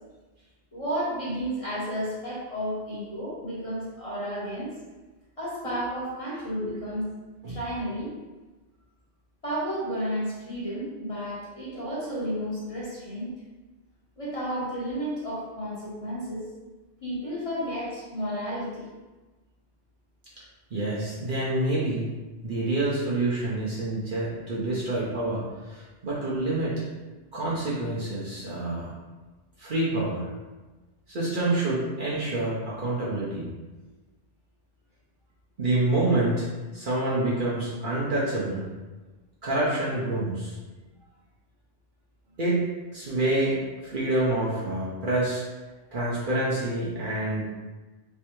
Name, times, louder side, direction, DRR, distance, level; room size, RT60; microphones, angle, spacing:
voice 1, 0.7-4.7 5.4-7.1 7.5-8.1 9.4-13.3 14.2-16.4 17.0-18.9, equal, 30° left, -8 dB, 1.0 m, -32 dB
voice 2, 6.3-6.7 7.4-7.6 20.7-22.1 22.4-26.8 27.3-28.9 29.6-30.3 31.1-33.5 35.6-36.5 36.7-38.6 39.4-40.6 42.4-45.4 45.9-47.4, right 2 dB, 50° right, -7 dB, 0.8 m, -27 dB
3.3 x 3.3 x 3.0 m, 1.2 s
omnidirectional pair, 1.2 m